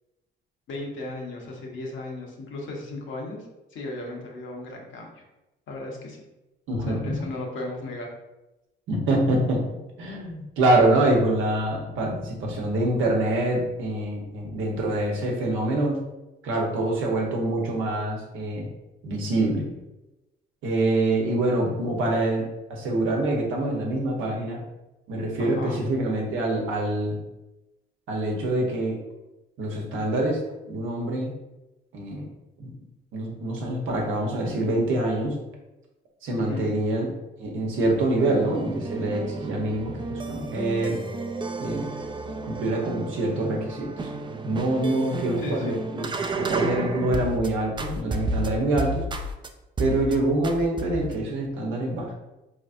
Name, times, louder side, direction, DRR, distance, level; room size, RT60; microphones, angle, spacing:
voice 1, 0.7-5.2 5.7-6.2 6.8-8.1 25.4-25.8 36.4-36.7 45.4-45.8, left 2 dB, 75° left, -1 dB, 1.1 m, -36 dB
voice 2, 6.7-7.2 8.9-16.0 16.4-18.7 19.0-19.7 20.6-24.6 25.1-27.2 28.1-29.0 29.6-31.3 31.9-32.3 32.6-32.7 33.1-35.4 36.2-37.1 37.4-41.0 41.6-41.8 42.4-43.9 44.4-46.1 46.3-49.0 49.8-52.1, right 1 dB, 85° right, 0 dB, 1.0 m, -25 dB
sound 1, 37.7-47.5 47.8-49.5 49.8-50.1 50.4-51.2, right 3 dB, 25° right, 0.4 m, -32 dB
4.3 x 3.1 x 2.5 m, 0.99 s
cardioid pair, 90°, 20 cm